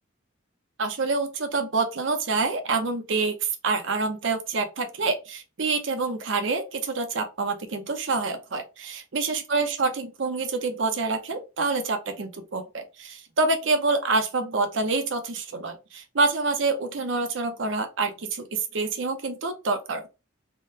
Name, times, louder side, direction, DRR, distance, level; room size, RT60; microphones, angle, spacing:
voice 1, 0.8-20.1, right 3 dB, 60° right, 0.6 m, -27 dB
3.6 x 2.1 x 2.7 m
head